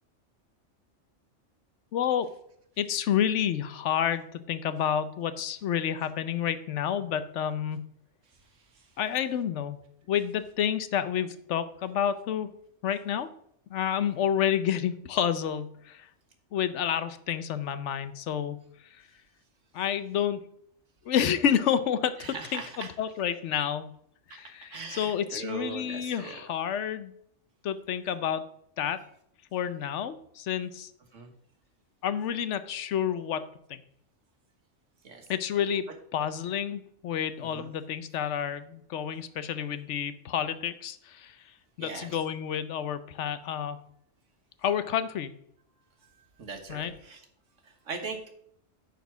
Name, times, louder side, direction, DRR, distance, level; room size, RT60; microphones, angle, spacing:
voice 1, 1.9-2.3 2.8-7.9 9.0-9.8 10.1-12.5 12.8-13.3 13.7-16.1 16.5-18.6 19.7-20.4 21.0-22.2 22.5-23.9 24.3-27.1 27.6-28.5 28.8-29.0 29.5-30.9 32.0-33.8 35.3-41.4 41.8-43.8 44.6-45.3 46.7-46.9, left 9 dB, 75° left, 13 dB, 1.0 m, -29 dB
voice 2, 22.2-22.9 24.3-24.4 24.7-26.4 31.1-31.3 35.0-35.2 37.4-37.7 41.8-42.2 46.4-47.2 47.9-48.3, right 4 dB, 85° right, 5 dB, 1.7 m, -40 dB
9.3 x 4.4 x 6.0 m, 0.69 s
omnidirectional pair, 1.3 m